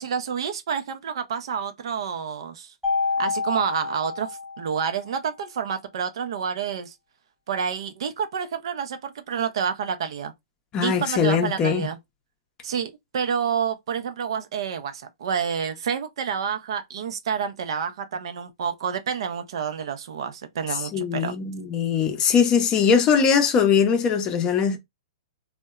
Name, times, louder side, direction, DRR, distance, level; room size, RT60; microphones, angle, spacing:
voice 1, 0.0-2.7 3.2-6.9 7.5-10.3 10.8-12.0 12.6-21.3, right 7 dB, 65° right, 0.5 m, -29 dB
Mallet percussion, 2.8-5.1, left 4 dB, ahead, 0.9 m, -28 dB
voice 2, 10.7-11.9 20.9-24.8, left 6 dB, 25° left, 0.5 m, -21 dB
2.7 x 2.1 x 2.3 m
hypercardioid pair, 135°, 3 cm